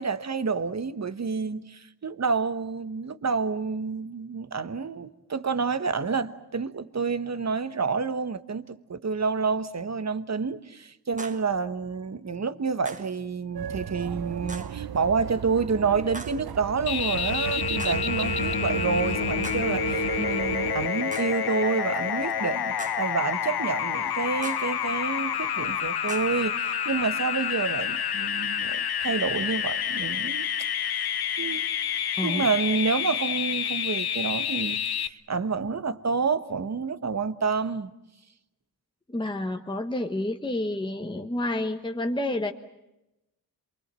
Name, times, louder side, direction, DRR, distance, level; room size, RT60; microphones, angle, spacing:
voice 1, 0.0-30.5 30.8-31.0 31.4-31.7 32.2-37.9, right 5 dB, 45° right, 1.3 m, -29 dB
sound 1, 11.2-11.6 12.8-13.2 14.5-14.8 16.1-16.5 17.8-18.2 19.4-19.8 21.1-21.5 22.8-23.2 24.4-24.8 26.1-26.5, right 3 dB, 20° right, 1.5 m, -41 dB
sound 2, 13.5-20.9, right 8 dB, 70° right, 0.9 m, -34 dB
sound 3, 16.9-35.1, left 9 dB, 75° left, 0.9 m, -28 dB
voice 2, 32.2-32.5 39.1-42.5, left 1 dB, 10° left, 1.3 m, -29 dB
27.5 x 24.0 x 7.6 m
wide cardioid pair, 125°, 38 cm